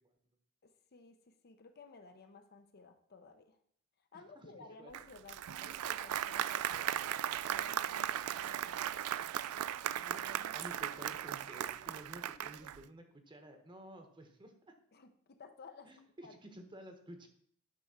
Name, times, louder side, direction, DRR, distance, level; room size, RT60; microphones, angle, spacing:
voice 1, 0.6-3.6 4.1-7.0 7.4-9.0 14.9-15.9 16.2-16.4, left 4 dB, 45° left, 7 dB, 0.7 m, -56 dB
voice 2, 4.1-4.9 10.0-14.7 15.8-17.3, equal, 20° right, 5 dB, 1.1 m, -53 dB
Applause, 4.9-12.8, right 11 dB, 75° right, 0.4 m, -37 dB
10.5 x 3.5 x 6.4 m, 0.64 s
head